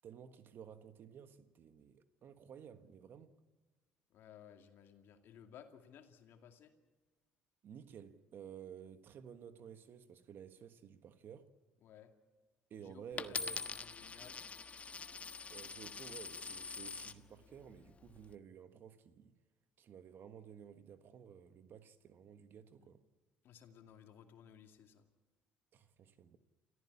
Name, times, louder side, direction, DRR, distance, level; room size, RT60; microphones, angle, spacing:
voice 1, 0.0-3.4 7.6-11.5 12.7-13.7 15.5-19.4 19.8-23.0 25.7-26.4, right 8 dB, 55° right, 1.5 m, -54 dB
voice 2, 4.1-6.7 11.8-12.1 12.8-14.4 22.8-22.9 23.4-25.1, left 8 dB, 65° left, 2.4 m, -58 dB
Coin (dropping), 13.2-17.2 17.9-18.3, left 5 dB, 35° left, 1.3 m, -44 dB
29.0 x 14.5 x 8.6 m
hypercardioid pair, 65°, 4 cm